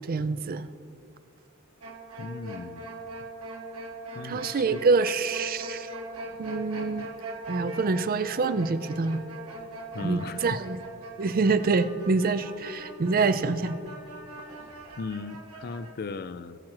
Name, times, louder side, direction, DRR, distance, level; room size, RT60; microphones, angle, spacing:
voice 1, 0.1-0.7 4.2-5.9 6.4-7.1 7.5-9.2 10.0-10.8 11.2-13.8, right 4 dB, 45° right, 12 dB, 0.5 m, -26 dB
sound 1, 1.8-15.9, right 1 dB, 90° right, 1.7 m, -41 dB
voice 2, 2.2-2.8 4.1-4.8 9.9-10.6 15.0-16.6, left 4 dB, 45° left, 14 dB, 0.4 m, -37 dB
19.5 x 7.6 x 3.0 m, 2.4 s
head